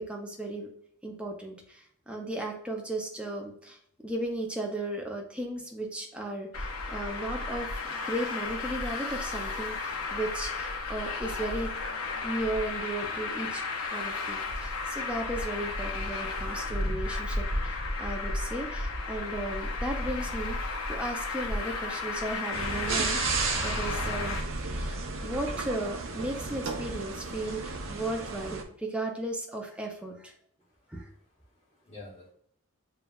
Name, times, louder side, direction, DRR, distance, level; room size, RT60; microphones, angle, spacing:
voice 1, 0.1-0.7 1.0-11.7 12.2-13.6 13.9-20.6 20.9-24.4 24.7-30.3 30.9-31.1, right 1 dB, 5° right, 1 dB, 0.5 m, -35 dB
Traffic noise roadway noise, 6.5-24.4, left 3 dB, 85° left, 0.7 m, -33 dB
sound 1, 22.5-28.6, right 4 dB, 65° right, 0.5 m, -33 dB
voice 2, 30.8-31.2 31.5-32.3, left 3 dB, 25° left, -6 dB, 0.8 m, -49 dB
6.8 x 2.3 x 2.3 m, 0.64 s
head